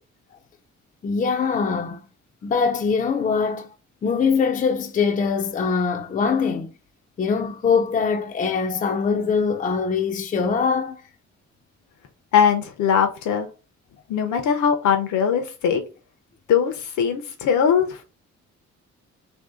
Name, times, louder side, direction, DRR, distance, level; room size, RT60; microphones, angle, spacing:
voice 1, 1.0-2.0 2.4-3.7 4.0-6.7 7.2-11.0, left 5 dB, 30° left, 0.4 m, -22 dB
voice 2, 12.3-13.5 14.1-15.8 16.5-18.0, left 7 dB, 80° left, 0.6 m, -20 dB
3.0 x 2.7 x 3.6 m
cardioid pair, 110°, 29 cm